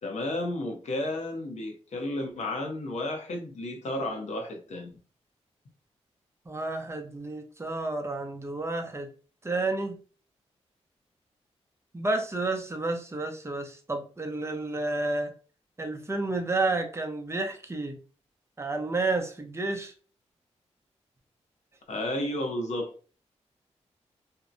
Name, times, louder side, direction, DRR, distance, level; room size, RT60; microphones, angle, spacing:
voice 1, 0.0-5.0 21.9-22.9, left 1 dB, 70° left, 0.6 m, -32 dB
voice 2, 6.5-9.1 9.4-10.0 11.9-15.3 15.8-18.0 18.6-19.9, right 2 dB, 20° right, 0.6 m, -30 dB
2.6 x 2.0 x 2.5 m
cardioid pair, 65°, 12 cm